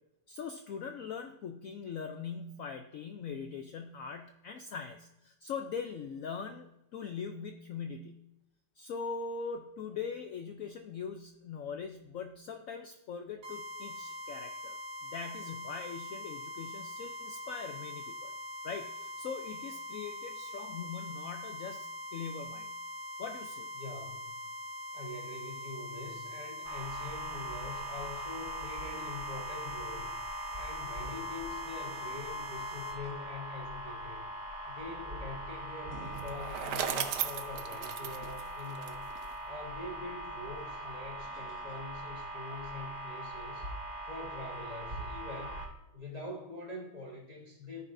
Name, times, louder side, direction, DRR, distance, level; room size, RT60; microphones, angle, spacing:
voice 1, 0.3-8.2 8.8-18.3 18.6-22.7 23.2-23.7, left 6 dB, 85° left, 6 dB, 0.7 m, -41 dB
sound 1, 13.4-33.0, left 1 dB, 90° right, 3.1 m, -43 dB
voice 2, 23.7-24.4 24.9-30.1 30.6-34.3 34.7-39.1 39.5-43.7 44.1-45.6 45.9-47.8, left 3 dB, 25° left, -3 dB, 1.1 m, -44 dB
sound 2, 26.6-45.7, right 1 dB, 25° right, 0.8 m, -41 dB
Bicycle, 36.1-39.3, right 9 dB, 70° right, 1.1 m, -36 dB
14.0 x 5.5 x 2.6 m, 0.89 s
omnidirectional pair, 2.1 m